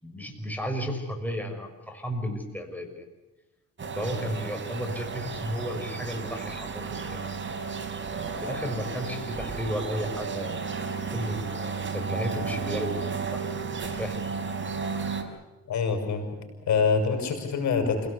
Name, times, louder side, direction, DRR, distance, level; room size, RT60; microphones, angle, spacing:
voice 1, 0.0-3.0 4.0-7.3 8.4-10.6 11.1-14.2, equal, 5° left, 3 dB, 5.7 m, -33 dB
sound 1, 3.8-15.2, right 5 dB, 40° right, 4.7 m, -33 dB
voice 2, 15.7-16.3 16.7-18.1, left 5 dB, 70° left, 6 dB, 6.2 m, -25 dB
28.0 x 17.5 x 8.3 m, 1.2 s
cardioid pair, 90°, 30 cm